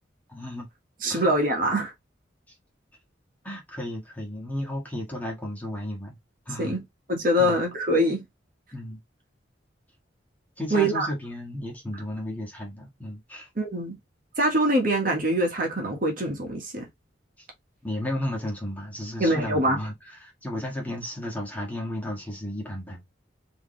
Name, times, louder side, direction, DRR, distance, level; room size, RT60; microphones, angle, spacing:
voice 1, 0.3-0.7 1.1-1.3 3.4-6.2 6.4-6.8 7.4-7.6 8.7-9.0 10.6-13.5 17.4-17.5 17.8-23.0, left 1 dB, 10° left, 1.6 m, -34 dB
voice 2, 1.0-1.9 6.6-6.8 7.1-8.2 10.7-11.1 13.6-14.0 14.4-16.8 19.2-19.8, right 1 dB, 45° right, 1.5 m, -24 dB
4.8 x 3.0 x 3.2 m
head